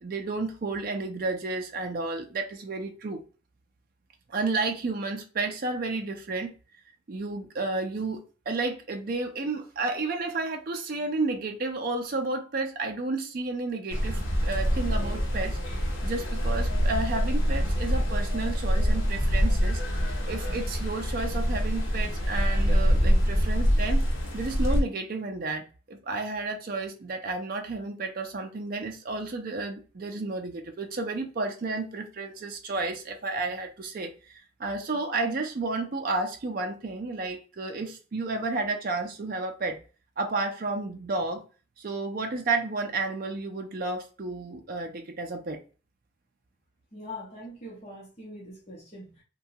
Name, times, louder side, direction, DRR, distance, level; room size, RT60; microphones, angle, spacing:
voice 1, 0.0-3.2 4.3-6.5 7.1-15.6 16.0-24.0 24.3-39.8 40.2-41.4 41.8-45.6, right 3 dB, 45° right, 0.4 m, -32 dB
sound 1, 13.9-24.8, equal, 70° left, 0.8 m, -25 dB
voice 2, 46.9-49.2, left 1 dB, 30° left, 0.8 m, -42 dB
2.8 x 2.2 x 2.7 m
head